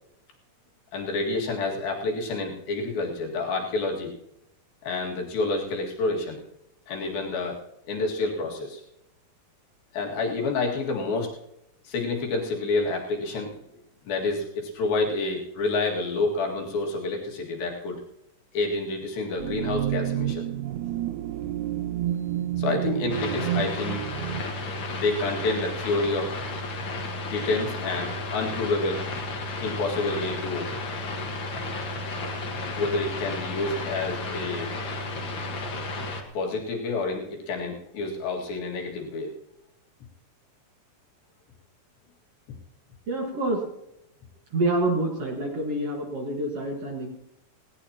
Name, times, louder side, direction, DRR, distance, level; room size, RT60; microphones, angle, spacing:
voice 1, 0.9-4.1 4.8-6.4 6.9-7.6 7.9-8.8 9.9-11.3 11.9-13.5 14.1-18.0 18.5-20.5 22.5-24.5 24.9-26.4 27.2-29.1 29.6-30.7 32.8-34.7 36.3-39.3, left 3 dB, 80° left, 0 dB, 3.9 m, -28 dB
sound 1, 19.4-24.4, right 12 dB, 85° right, 1.7 m, -29 dB
sound 2, 23.1-36.2, left 2 dB, 50° left, 1.6 m, -33 dB
voice 2, 43.1-43.7 44.5-47.1, right 2 dB, 50° right, 1 dB, 2.3 m, -27 dB
18.5 x 17.0 x 2.9 m, 0.82 s
omnidirectional pair, 4.1 m